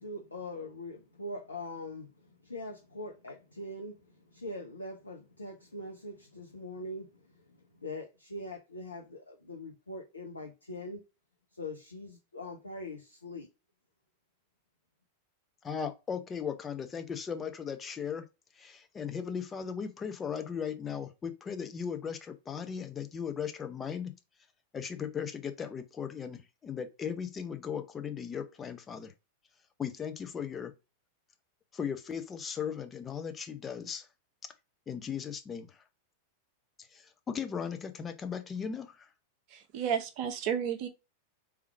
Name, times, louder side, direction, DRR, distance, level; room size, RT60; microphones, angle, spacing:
voice 1, 0.0-11.0 11.5-13.5, left 1 dB, 85° left, 0.8 m, -42 dB
voice 2, 15.6-18.3 18.6-24.2 24.7-29.1 29.8-30.7 31.7-34.1 34.9-35.8 36.9-39.1, left 7 dB, 20° left, 0.8 m, -37 dB
voice 3, 39.5-40.9, right 8 dB, 45° right, 0.9 m, -32 dB
3.5 x 3.1 x 4.7 m
figure-of-eight pair, 90°, 0 cm